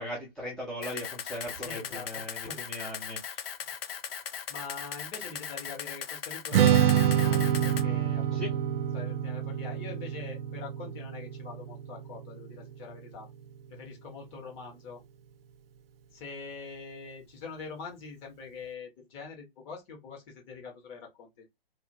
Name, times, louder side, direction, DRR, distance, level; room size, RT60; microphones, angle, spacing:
voice 1, 0.0-3.5 8.3-8.5, left 1 dB, ahead, 0.4 m, -39 dB
Camera, 0.8-7.8, left 8 dB, 70° left, 0.7 m, -38 dB
voice 2, 1.5-2.1 2.4-2.6 3.7-3.9 4.5-8.6 8.9-13.3 13.7-15.0 16.1-21.4, left 4 dB, 30° left, 1.3 m, -44 dB
Strum, 6.5-12.8, right 9 dB, 75° right, 0.5 m, -27 dB
2.7 x 2.5 x 2.7 m
hypercardioid pair, 130°, 30 cm